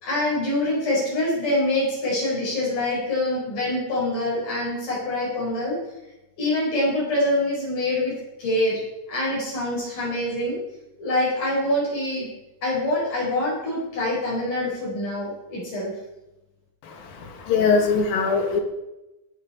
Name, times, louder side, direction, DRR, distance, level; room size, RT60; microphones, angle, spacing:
voice 1, 0.0-5.8 6.4-8.8 9.1-10.6 11.0-12.3 12.6-15.9, left 1 dB, 60° left, -6 dB, 6.1 m, -25 dB
voice 2, 16.8-18.6, left 4 dB, 85° left, 3 dB, 3.5 m, -22 dB
19.0 x 9.2 x 4.3 m, 0.97 s
omnidirectional pair, 4.0 m